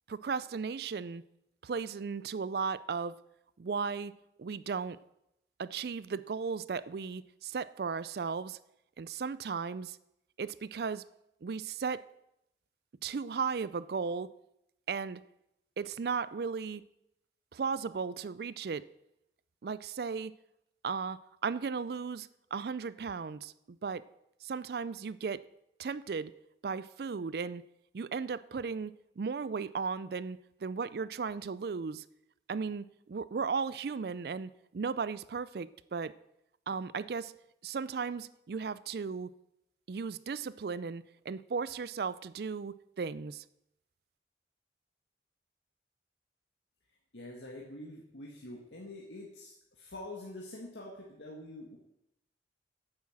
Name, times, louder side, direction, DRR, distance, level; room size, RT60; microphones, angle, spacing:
voice 1, 0.1-1.2 1.6-3.2 3.6-4.1 4.4-5.0 5.6-8.6 9.0-10.0 10.4-11.0 11.4-12.1 13.0-14.3 14.9-15.2 15.8-16.8 17.5-18.9 19.6-20.3 20.8-24.0 24.4-25.4 25.8-26.3 26.6-27.6 27.9-32.0 32.5-36.1 36.7-37.3 37.6-39.3 39.9-43.4, right 5 dB, 60° right, 0.4 m, -36 dB
voice 2, 47.1-51.8, left 1 dB, 85° left, 1.9 m, -46 dB
9.7 x 8.7 x 7.4 m
head